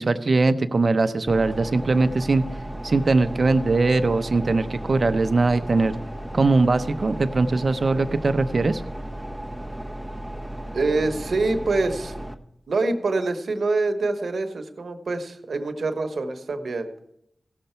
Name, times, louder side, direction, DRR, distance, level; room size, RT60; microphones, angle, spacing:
voice 1, 0.0-2.4 2.8-6.0 6.3-8.8, right 3 dB, 60° right, 11 dB, 0.7 m, -21 dB
sound 1, 1.3-12.3, right 1 dB, ahead, 0.9 m, -35 dB
voice 2, 10.7-12.2 12.7-16.9, right 3 dB, 75° right, 7 dB, 1.0 m, -25 dB
16.5 x 6.7 x 4.4 m, 0.78 s
cardioid pair, 45°, 0 cm